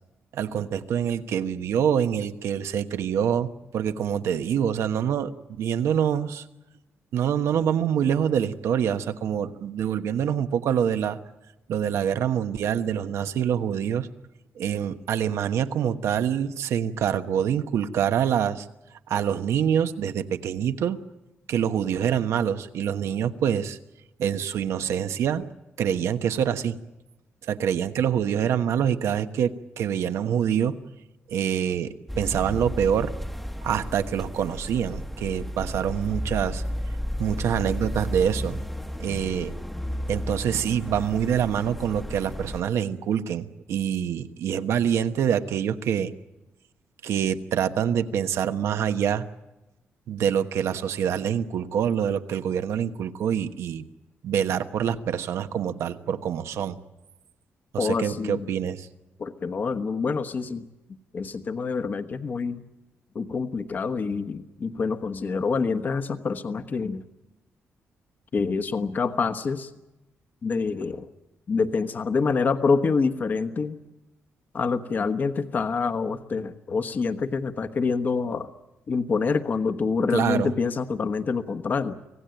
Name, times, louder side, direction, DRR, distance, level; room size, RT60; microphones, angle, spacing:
voice 1, 0.3-6.4 7.1-11.2 11.7-14.1 14.6-18.7 19.1-21.0 21.5-23.8 24.2-25.4 25.8-26.8 27.5-30.8 31.3-33.1 33.6-36.6 37.2-38.6 39.0-39.5 40.1-46.1 47.0-49.3 50.1-53.8 54.2-56.8 57.7-58.9 80.1-80.5, right 8 dB, 85° right, 9 dB, 1.2 m, -25 dB
sound 1, 32.1-42.6, equal, 5° left, 1.0 m, -33 dB
voice 2, 57.8-58.5 59.2-60.7 61.1-62.6 63.1-67.0 68.3-69.7 70.4-71.1 71.5-73.8 74.5-78.5 78.9-81.9, left 4 dB, 40° left, 9 dB, 1.2 m, -26 dB
25.0 x 17.5 x 9.1 m, 0.99 s
wide cardioid pair, 145°, 5 cm